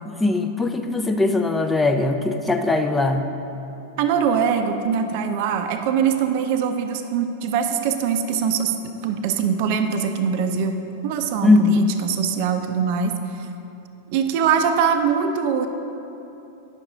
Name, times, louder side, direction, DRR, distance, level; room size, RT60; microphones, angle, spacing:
voice 1, 0.0-3.3 11.4-11.9, left 3 dB, 10° left, 5 dB, 0.4 m, -20 dB
voice 2, 4.0-8.8 9.0-10.7 11.0-13.5 14.1-15.7, right 7 dB, 50° right, 7 dB, 0.5 m, -22 dB
9.8 x 6.3 x 3.6 m, 2.9 s
figure-of-eight pair, 90°, 0 cm